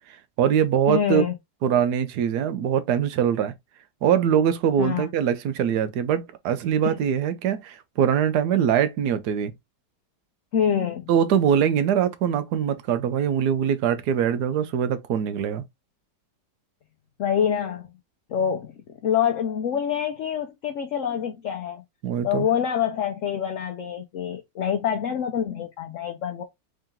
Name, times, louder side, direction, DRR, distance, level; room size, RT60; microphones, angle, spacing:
voice 1, 0.1-1.2 1.6-3.5 4.0-9.5 11.1-15.6 22.0-22.5, right 8 dB, 70° right, 1.1 m, -23 dB
voice 2, 0.9-1.3 4.8-5.1 6.8-7.0 10.5-11.1 17.2-17.9 18.3-18.7 19.0-21.8 22.2-26.4, left 8 dB, 60° left, 0.8 m, -26 dB
3.7 x 2.9 x 3.5 m
omnidirectional pair, 1.9 m